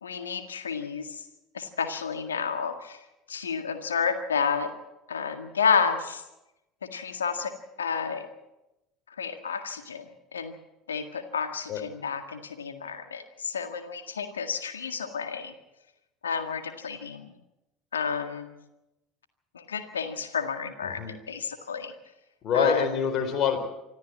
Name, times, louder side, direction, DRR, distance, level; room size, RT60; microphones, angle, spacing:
voice 1, 0.0-1.2 1.5-3.0 3.3-4.7 5.1-6.2 6.8-7.5 7.8-8.3 9.2-10.1 10.3-10.5 10.9-15.5 16.2-17.3 17.9-18.5 19.5-21.9 22.5-23.0, left 6 dB, 80° left, 8 dB, 1.8 m, -30 dB
voice 2, 20.8-21.1 22.4-23.6, left 6 dB, 45° left, 6 dB, 4.1 m, -26 dB
25.5 x 14.0 x 7.7 m, 0.96 s
figure-of-eight pair, 70°, 0 cm